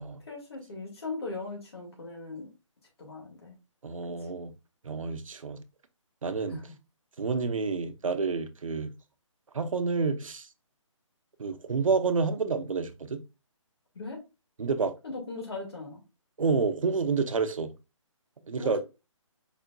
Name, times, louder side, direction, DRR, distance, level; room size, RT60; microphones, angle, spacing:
voice 1, 0.3-2.5 3.0-3.6 6.5-6.6 13.9-14.2 15.0-16.0 18.6-18.8, left 3 dB, 50° left, 2.0 m, -39 dB
voice 2, 3.8-4.5 4.8-5.6 6.2-6.6 7.2-8.9 9.5-10.5 11.4-13.2 14.6-14.9 16.4-17.7 18.5-18.8, right 4 dB, 80° right, 0.8 m, -29 dB
4.9 x 4.1 x 2.3 m
hypercardioid pair, 175°, 17 cm